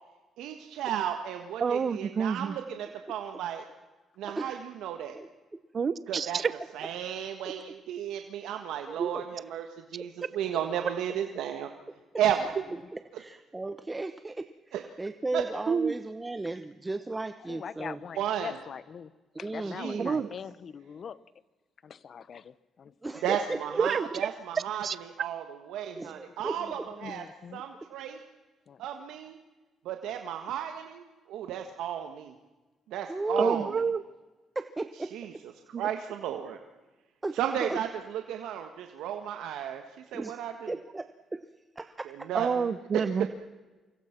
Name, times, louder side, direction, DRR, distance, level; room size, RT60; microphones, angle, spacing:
voice 1, 0.4-3.6 4.2-5.2 6.1-6.4 6.7-9.7 9.9-11.7 12.2-12.5 14.7-14.8 15.3-15.4 18.2-18.6 19.6-20.3 23.2-24.9 25.2-25.4 25.7-27.2 27.5-28.2 28.8-29.4 29.9-31.0 31.3-32.3 32.9-33.7 35.1-35.3 35.8-36.6 37.4-39.8 40.1-40.7 42.1-42.6 42.9-43.1, right 10 dB, 90° right, 5 dB, 1.7 m, -33 dB
voice 2, 1.6-2.6 5.7-6.5 8.9-9.1 15.7-15.9 20.0-20.3 23.8-24.0 24.5-25.0 33.4-34.0 35.7-35.9 42.3-43.3, right 6 dB, 45° right, 16 dB, 1.0 m, -28 dB
voice 3, 4.2-4.6 5.1-5.3 7.4-7.5 9.1-9.2 10.0-10.3 12.9-18.0 19.3-20.2 23.0-23.8 26.0-26.7 33.1-33.6 34.5-35.1 37.2-37.8 40.1-40.4 40.7-41.4 41.8-42.3, right 2 dB, 20° right, 10 dB, 1.1 m, -35 dB
voice 4, 17.5-19.1 19.4-21.2 21.8-23.2 26.0-26.1 26.6-26.7 27.0-27.6 28.7-28.8, left 7 dB, 50° left, 17 dB, 1.0 m, -43 dB
28.0 x 25.5 x 6.0 m, 1.2 s
cardioid pair, 90°, 0 cm